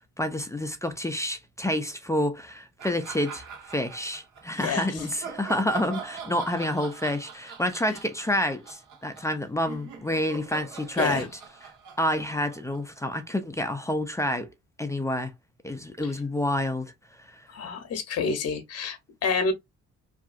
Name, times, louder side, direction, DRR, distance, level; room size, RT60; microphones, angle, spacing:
voice 1, 0.2-11.3 11.6-11.7 12.0-14.5 14.8-15.3 15.6-16.9 17.3-17.5, left 1 dB, 10° left, 0.4 m, -28 dB
sound 1, 2.8-4.4 4.9-13.2, right 6 dB, 80° right, 1.2 m, -42 dB
voice 2, 4.6-4.9 11.0-11.3 16.0-16.1 17.5-19.5, left 5 dB, 55° left, 0.8 m, -28 dB
2.8 x 2.5 x 2.4 m
cardioid pair, 90°, 30 cm